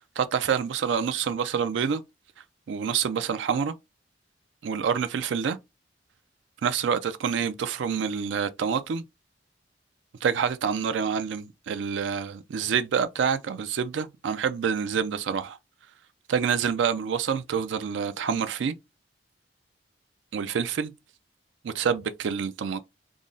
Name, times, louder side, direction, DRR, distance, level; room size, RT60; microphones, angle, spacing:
voice 1, 0.2-2.0 2.7-3.7 4.6-5.6 6.6-9.0 10.2-15.6 16.3-18.8 20.3-20.9 21.6-22.8, right 7 dB, 80° right, 0.4 m, -27 dB
3.6 x 2.0 x 3.8 m
head